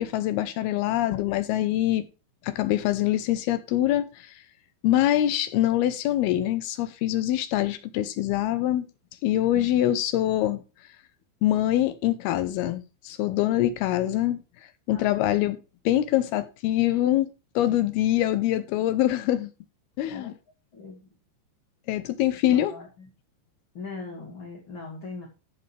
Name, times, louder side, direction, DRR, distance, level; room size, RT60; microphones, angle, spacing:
voice 1, 0.0-2.1 2.4-4.3 4.8-8.9 9.2-10.6 11.4-14.4 14.9-15.6 15.9-19.5 20.0-20.3 21.9-22.8, left 13 dB, 80° left, 2.3 m, -24 dB
voice 2, 14.9-15.2 17.7-17.9 20.1-20.3 20.7-21.1 22.5-23.1 23.7-25.3, left 4 dB, 35° left, 2.4 m, -40 dB
14.5 x 5.5 x 3.3 m
omnidirectional pair, 5.3 m